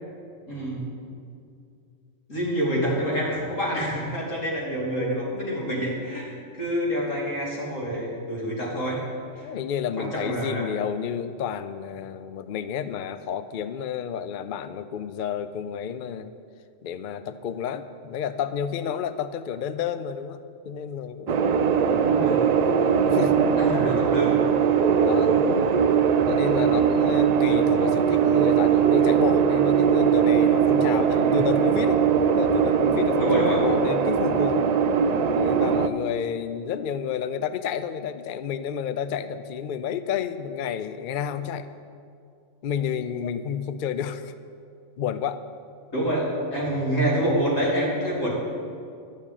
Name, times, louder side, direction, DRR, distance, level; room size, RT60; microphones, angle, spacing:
voice 1, 0.5-0.9 2.3-9.0 9.4-9.5 10.0-10.7 22.0-22.4 23.6-24.4 31.1-31.4 33.2-33.6 45.9-48.3, equal, 75° left, -5 dB, 3.3 m, -27 dB
voice 2, 9.4-16.3 16.8-21.5 22.8-23.6 25.0-25.4 26.3-34.6 35.3-41.7 42.6-44.3 45.0-45.4, left 8 dB, 60° left, 12 dB, 0.5 m, -30 dB
sound 1, 21.3-35.9, right 7 dB, 70° right, 0.4 m, -20 dB
11.5 x 6.5 x 8.9 m, 2.4 s
omnidirectional pair, 1.3 m